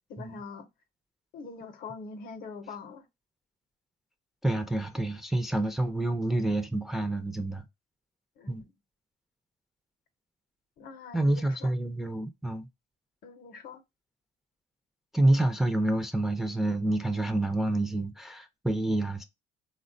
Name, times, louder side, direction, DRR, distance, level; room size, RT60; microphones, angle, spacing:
voice 1, 0.1-0.7 1.3-3.1 8.4-8.7 10.8-11.7 13.2-13.8, left 5 dB, 60° left, 0.7 m, -43 dB
voice 2, 4.4-7.6 8.5-8.6 11.1-12.7 15.1-19.2, right 1 dB, ahead, 0.4 m, -28 dB
3.5 x 2.1 x 2.5 m
cardioid pair, 110°, 17 cm